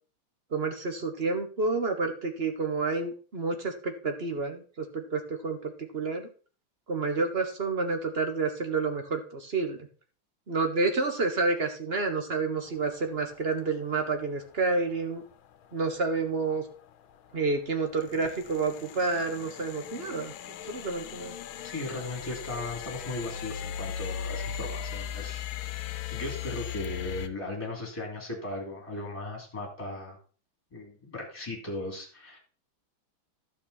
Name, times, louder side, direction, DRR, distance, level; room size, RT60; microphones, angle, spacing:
voice 1, 0.5-6.3 6.9-9.8 10.5-15.2 15.7-16.6 17.3-20.3 20.7-21.3, right 3 dB, 35° right, 6 dB, 1.2 m, -29 dB
sound 1, 12.7-27.3, left 9 dB, 75° left, 1.5 m, -38 dB
voice 2, 21.6-25.8 26.1-30.2 30.7-32.4, left 2 dB, 15° left, 1 dB, 3.0 m, -37 dB
11.5 x 6.7 x 4.2 m, 0.38 s
omnidirectional pair, 2.3 m